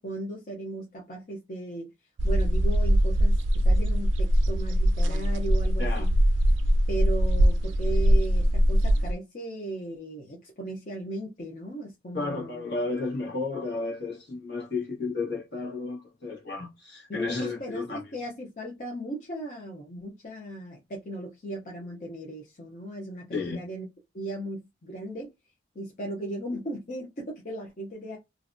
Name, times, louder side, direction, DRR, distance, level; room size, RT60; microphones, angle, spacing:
voice 1, 0.0-1.9 2.2-6.1 6.9-12.7 17.1-23.9 24.1-25.3 25.7-28.2, right 2 dB, 40° left, 0.6 m, -37 dB
sound 1, 2.2-9.1, equal, 90° right, 0.4 m, -22 dB
voice 2, 12.1-18.0 23.3-23.6, left 3 dB, 65° left, 1.1 m, -32 dB
2.6 x 2.1 x 2.5 m
head